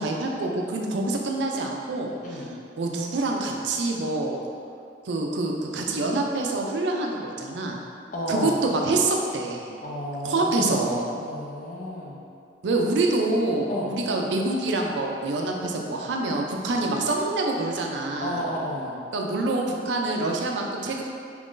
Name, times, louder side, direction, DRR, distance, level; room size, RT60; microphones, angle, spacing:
voice 1, 0.0-2.4 2.8-4.4 5.1-7.8 8.3-9.7 10.2-11.2 12.6-18.4 19.1-21.1, right 2 dB, 85° right, 1 dB, 0.4 m, -26 dB
voice 2, 2.2-2.5 8.1-8.6 9.8-12.2 13.7-13.9 18.2-19.0, equal, 50° left, -4 dB, 0.5 m, -32 dB
3.0 x 2.5 x 3.6 m, 2.4 s
head